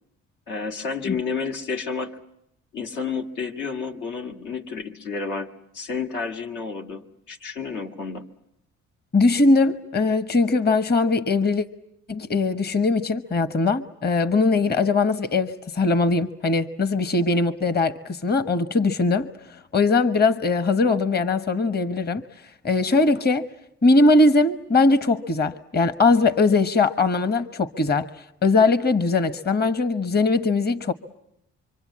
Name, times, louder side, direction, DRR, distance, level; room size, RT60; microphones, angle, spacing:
voice 1, 0.5-2.2 2.7-8.2, left 5 dB, 80° left, 2.3 m, -31 dB
voice 2, 9.1-11.7 12.1-19.3 19.7-22.2 22.6-23.5 23.8-28.1 28.4-30.9, left 3 dB, 35° left, 1.2 m, -20 dB
26.0 x 25.0 x 8.6 m
cardioid pair, 90°, 30 cm